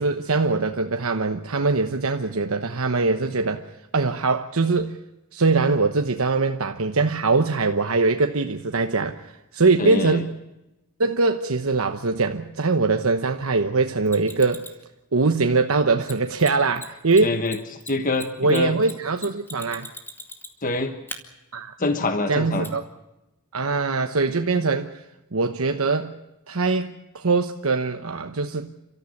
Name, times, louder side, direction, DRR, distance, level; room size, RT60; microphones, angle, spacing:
voice 1, 0.0-5.0 5.3-10.3 11.0-14.7 15.1-17.4 18.4-19.9 21.5-21.7 22.3-22.8 23.5-25.0 25.3-26.1 26.5-28.7, right 3 dB, 80° right, 1.1 m, -22 dB
voice 2, 9.8-10.2 17.2-17.6 17.9-18.8 20.6-20.9 21.8-22.7, left 2 dB, 40° left, 1.4 m, -25 dB
Mechanisms, 14.1-14.8 16.0-16.1 16.4-16.5 16.7-16.9 17.1-20.7 21.1-21.2 22.6-22.7, left 2 dB, 10° left, 2.2 m, -38 dB
30.0 x 14.0 x 8.5 m
head